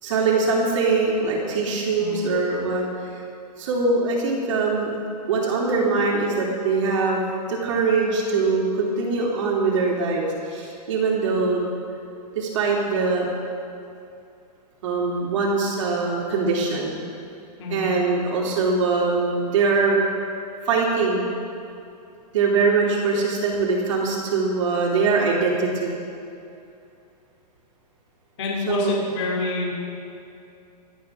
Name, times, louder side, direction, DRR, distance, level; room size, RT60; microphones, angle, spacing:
voice 1, 0.0-2.8 3.6-4.9 5.3-7.2 7.5-11.6 12.3-13.3 14.8-17.0 17.7-20.0 20.6-21.3 22.3-25.9 28.7-29.0, right 4 dB, 45° right, -3 dB, 3.1 m, -22 dB
voice 2, 28.4-29.7, left 3 dB, 45° left, -3 dB, 2.7 m, -27 dB
23.5 x 8.6 x 3.7 m, 2.6 s
hypercardioid pair, 165°, 21 cm